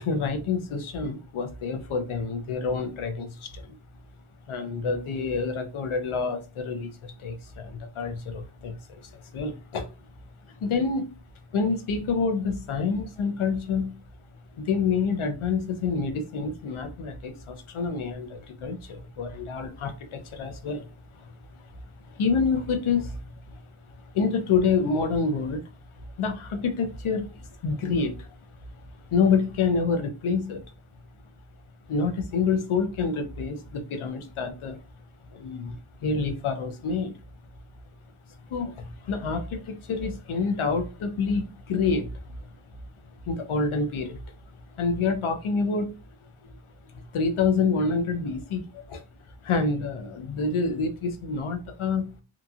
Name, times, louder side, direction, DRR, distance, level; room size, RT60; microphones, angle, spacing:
voice 1, 0.0-3.8 4.5-9.9 10.5-11.1 11.5-13.9 14.6-20.9 21.1-21.7 22.0-23.6 23.9-25.7 26.2-28.4 29.1-30.6 31.9-34.8 35.3-37.1 38.5-42.5 43.3-44.3 44.7-45.9 46.9-49.0 49.4-52.1, left 4 dB, 75° left, 0.7 m, -28 dB
2.9 x 2.5 x 2.4 m
wide cardioid pair, 135°, 50 cm